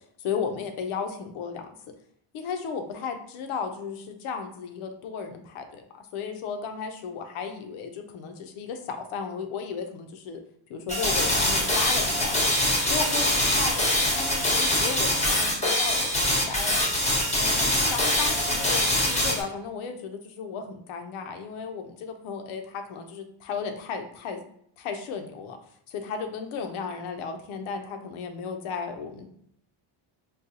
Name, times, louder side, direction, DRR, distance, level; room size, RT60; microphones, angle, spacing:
voice 1, 0.2-1.8 2.3-10.4 10.7-12.4 12.9-16.0 16.3-16.8 17.3-24.4 24.8-25.6 25.9-29.3, left 5 dB, 85° left, 5 dB, 0.6 m, -34 dB
sound 1, 10.9-19.4, left 1 dB, 15° left, 0.8 m, -24 dB
3.9 x 2.3 x 2.6 m, 0.69 s
cardioid pair, 110°, 48 cm